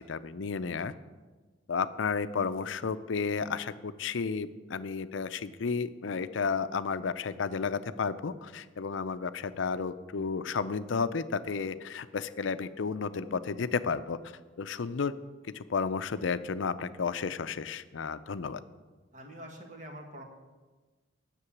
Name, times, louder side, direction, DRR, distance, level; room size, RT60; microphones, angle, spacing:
voice 1, 0.1-0.9 1.7-14.2 14.6-15.1 15.5-18.6, left 5 dB, 80° left, 13 dB, 0.5 m, -32 dB
voice 2, 19.1-20.2, right 1 dB, 40° right, 2 dB, 1.7 m, -45 dB
9.7 x 6.7 x 8.6 m, 1.3 s
head